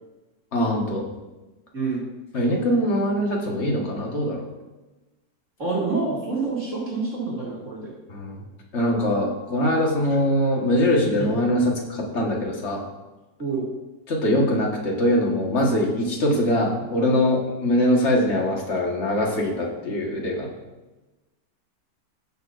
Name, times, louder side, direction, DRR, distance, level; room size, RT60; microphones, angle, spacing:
voice 1, 0.5-1.0 2.3-4.4 8.1-8.4 8.7-11.6 11.9-12.8 14.1-20.5, left 1 dB, 40° left, -1 dB, 1.8 m, -22 dB
voice 2, 1.7-2.0 5.6-7.9 11.0-11.3 13.4-13.7, right 4 dB, 45° right, -6 dB, 2.6 m, -27 dB
16.5 x 6.5 x 2.6 m, 1.1 s
omnidirectional pair, 1.9 m